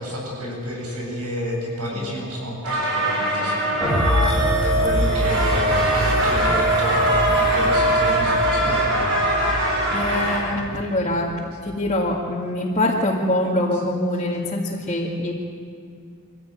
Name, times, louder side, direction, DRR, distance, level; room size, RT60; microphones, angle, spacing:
voice 1, 0.0-4.1 4.6-9.1, equal, 85° right, -1 dB, 7.7 m, -30 dB
sound 1, 2.6-4.8 5.0-10.4, equal, 65° right, 6.9 m, -23 dB
sound 2, 3.8-12.1, left 1 dB, ahead, 3.2 m, -26 dB
sound 3, 4.0-10.5, right 2 dB, 30° right, 7.3 m, -24 dB
voice 2, 9.9-15.3, left 1 dB, 30° left, -5 dB, 2.1 m, -24 dB
24.5 x 16.0 x 9.3 m, 2.5 s
head